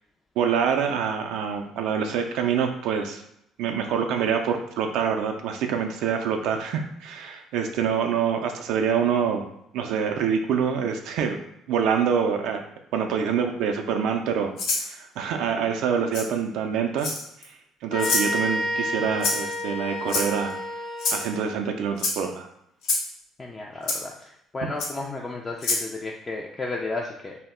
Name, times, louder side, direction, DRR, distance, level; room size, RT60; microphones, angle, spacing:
voice 1, 0.4-3.2 3.6-11.4 11.7-12.6 12.9-17.1 17.4-17.6 17.8-20.6 21.1-22.5, right 7 dB, 70° right, 4 dB, 0.3 m, -26 dB
Rattle (instrument), 14.6-14.9 16.1-16.3 17.0-17.4 18.0-18.3 19.2-19.5 20.1-20.5 21.0-21.2 22.0-22.2 22.8-23.1 23.9-24.0 24.8-24.9 25.6-25.8, left 3 dB, 75° left, 0.6 m, -25 dB
sound 1, 17.9-21.6, equal, 45° left, 0.9 m, -30 dB
voice 2, 23.4-27.4, left 3 dB, 30° left, -1 dB, 0.3 m, -33 dB
2.0 x 2.0 x 3.5 m, 0.75 s
hypercardioid pair, 60°, 0 cm